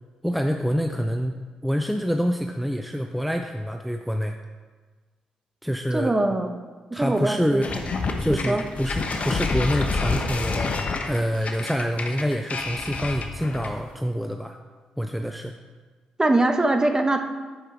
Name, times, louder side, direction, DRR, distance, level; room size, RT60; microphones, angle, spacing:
voice 1, 0.2-4.4 5.6-6.1 6.9-7.7 8.2-10.7 11.1-14.6 15.0-15.5, equal, ahead, 5 dB, 0.6 m, -26 dB
voice 2, 5.9-6.5 6.9-7.9 8.3-8.6 16.2-17.2, right 2 dB, 20° right, 5 dB, 1.1 m, -23 dB
sound 1, 7.6-13.9, left 3 dB, 50° left, 1.0 m, -28 dB
9.7 x 5.0 x 4.7 m, 1.4 s
hypercardioid pair, 40°, 3 cm